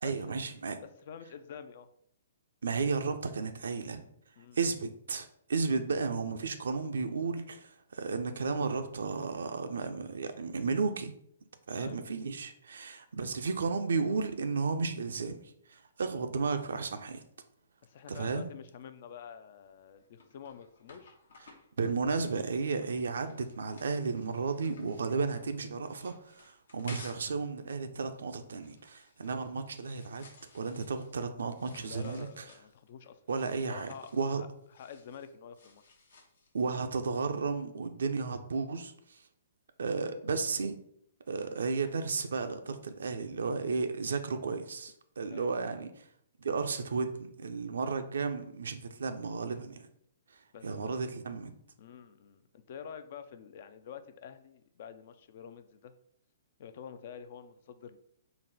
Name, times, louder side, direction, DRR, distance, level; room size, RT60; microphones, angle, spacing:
voice 1, 0.0-0.8 2.6-4.0 4.6-11.1 11.7-15.4 15.7-17.2 18.1-18.5 21.8-30.3 30.5-32.4 33.3-34.4 36.5-39.2 39.8-40.8 41.3-45.9 46.4-49.8 50.6-51.5, right 4 dB, 75° right, 8 dB, 0.4 m, -33 dB
voice 2, 0.8-1.9 4.4-4.6 11.8-12.1 17.8-21.2 31.8-33.2 33.7-34.1 34.4-36.0 45.3-45.8 50.5-51.1 51.8-56.0 56.6-58.0, left 7 dB, 55° left, 11 dB, 0.3 m, -48 dB
sound 1, 19.6-27.4 27.7-36.7, left 3 dB, 75° left, 0.8 m, -56 dB
3.9 x 2.1 x 3.9 m, 0.70 s
hypercardioid pair, 135°, 0 cm